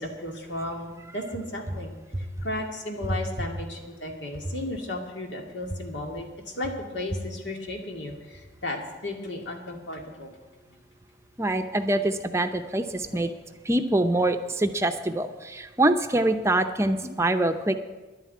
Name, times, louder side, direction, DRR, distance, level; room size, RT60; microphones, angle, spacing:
voice 1, 0.0-10.3 13.1-13.2, left 1 dB, 80° left, 2 dB, 2.3 m, -35 dB
voice 2, 11.4-13.3 13.7-17.7, right 1 dB, 15° right, 7 dB, 0.7 m, -24 dB
11.0 x 9.6 x 8.5 m, 1.2 s
head